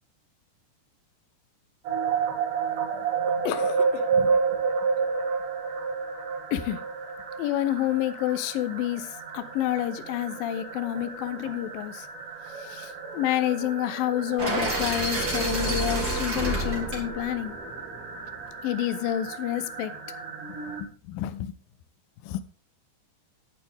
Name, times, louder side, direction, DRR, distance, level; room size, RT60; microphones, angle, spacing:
sound 1, 1.8-20.8, right 5 dB, 55° right, 2.9 m, -31 dB
voice 1, 3.4-4.4 6.5-6.8 7.4-12.1 12.6-17.6 18.6-19.9 20.7-21.5 22.2-22.4, left 12 dB, 85° left, 2.0 m, -29 dB
sound 2, 14.4-18.4, right 1 dB, 25° right, 3.3 m, -30 dB
10.5 x 10.5 x 3.5 m
omnidirectional pair, 5.2 m